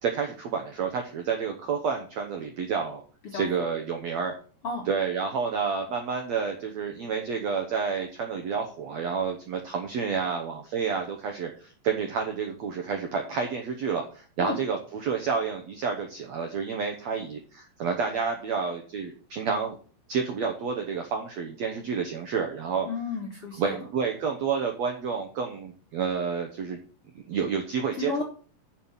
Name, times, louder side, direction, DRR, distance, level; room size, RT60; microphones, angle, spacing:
voice 1, 0.0-3.0 3.3-4.3 4.9-19.8 20.1-22.9 23.6-26.8 27.1-28.2, right 6 dB, 75° right, 4 dB, 1.6 m, -29 dB
voice 2, 22.8-23.9 27.9-28.2, left 4 dB, 55° left, 0 dB, 1.7 m, -32 dB
7.2 x 6.3 x 7.3 m, 0.41 s
omnidirectional pair, 4.5 m